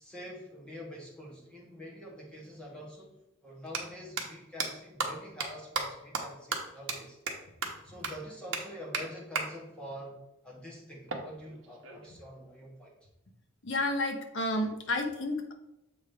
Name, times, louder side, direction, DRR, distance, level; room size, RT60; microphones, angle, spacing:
voice 1, 0.0-3.2 3.4-7.2 7.8-10.2 10.4-12.9, equal, 5° left, -4 dB, 1.4 m, -46 dB
sound 1, 2.4-2.5 3.6-3.8 4.2-4.3 4.6-4.7 5.0-5.1 5.4-5.5 5.7-5.8 6.1-6.2 6.5-6.6 6.9-7.0 7.3-7.4 7.6-7.7 8.0-8.1 8.5-8.6 8.9-9.0 9.4-9.5 11.1-12.1, right 4 dB, 60° right, 1.0 m, -33 dB
voice 2, 13.6-15.5, left 1 dB, 60° left, 4 dB, 0.9 m, -31 dB
7.4 x 4.9 x 3.4 m, 0.90 s
head